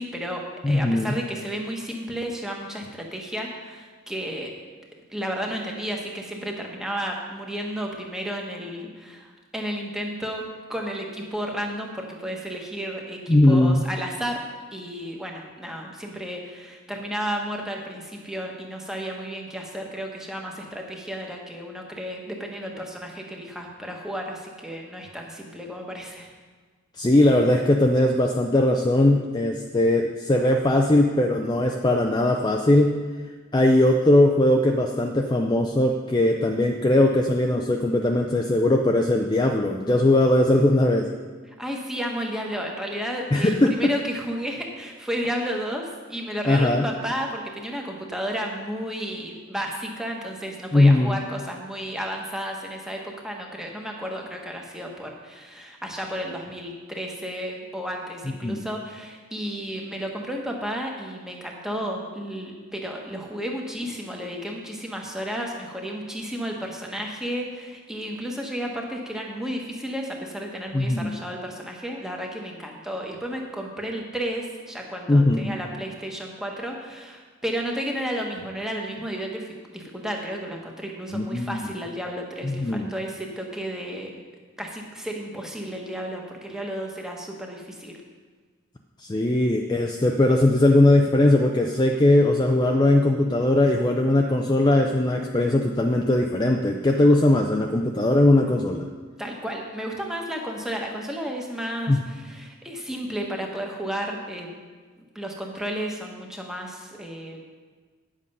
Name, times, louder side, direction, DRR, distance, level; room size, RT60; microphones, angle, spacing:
voice 1, 0.0-4.5 5.1-10.4 10.7-14.4 14.7-26.3 41.6-84.1 84.6-88.0 99.2-104.6 105.1-107.5, equal, 5° right, 0 dB, 1.1 m, -32 dB
voice 2, 0.6-1.2 13.3-13.8 27.0-32.9 33.5-41.1 43.3-43.9 46.5-46.9 50.7-51.2 58.4-58.7 70.7-71.2 75.1-75.5 81.1-81.6 82.4-82.9 89.0-98.8 101.9-102.0, left 1 dB, 20° left, 2 dB, 0.4 m, -20 dB
10.0 x 7.5 x 5.4 m, 1.5 s
head